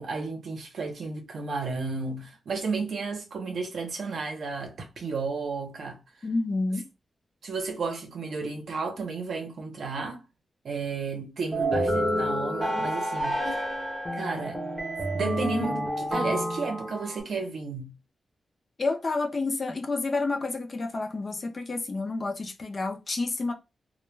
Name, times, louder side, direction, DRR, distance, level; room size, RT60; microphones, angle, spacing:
voice 1, 0.0-6.0 7.4-10.2 10.6-13.5 14.1-14.6 15.1-17.9, right 4 dB, 60° right, 0.7 m, -33 dB
voice 2, 6.2-6.9 18.8-23.5, left 3 dB, 30° left, 0.4 m, -29 dB
sound 1, 11.5-17.2, equal, 10° right, 0.7 m, -29 dB
2.1 x 2.1 x 3.1 m
wide cardioid pair, 155°, 0 cm